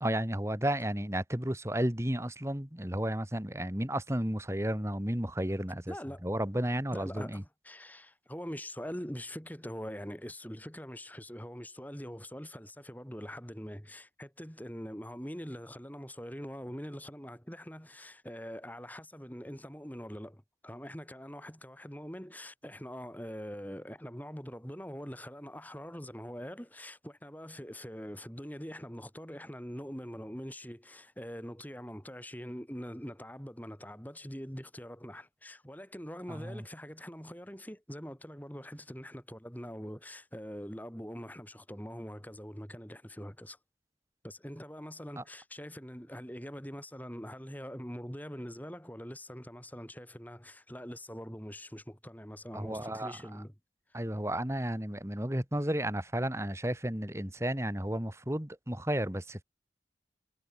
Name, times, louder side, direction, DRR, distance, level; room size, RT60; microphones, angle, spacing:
voice 1, 0.0-5.9 6.2-7.4 36.3-36.6 45.2-45.3 52.5-53.1 53.9-59.4, right 1 dB, 15° right, 1.9 m, -33 dB
voice 2, 5.9-6.3 6.9-43.6 44.2-53.5 53.9-54.0, equal, 10° left, 7.6 m, -43 dB
head